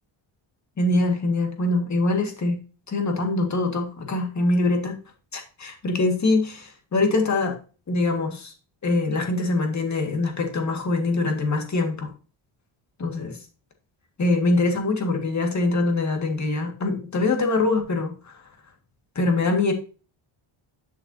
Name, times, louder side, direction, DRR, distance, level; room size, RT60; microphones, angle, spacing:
voice 1, 0.8-2.6 2.9-5.0 5.3-7.6 7.9-8.5 8.8-12.1 13.0-13.4 14.2-18.1 19.2-19.7, left 2 dB, 35° left, 4 dB, 1.9 m, -23 dB
11.5 x 6.0 x 2.8 m, 0.34 s
wide cardioid pair, 150°, 50 cm